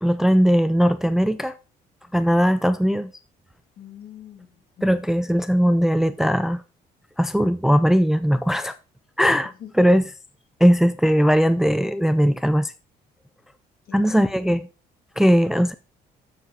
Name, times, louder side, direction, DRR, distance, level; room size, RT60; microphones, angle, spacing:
voice 1, 0.0-1.5 2.1-3.1 4.8-6.6 7.2-8.7 9.2-9.5 9.8-10.0 10.6-12.7 13.9-14.7 15.2-15.7, equal, ahead, 0.4 m, -19 dB
voice 2, 3.8-5.0 9.4-9.9 13.9-14.1, left 9 dB, 60° left, 2.4 m, -44 dB
7.4 x 7.3 x 3.8 m
cardioid pair, 110°, 17 cm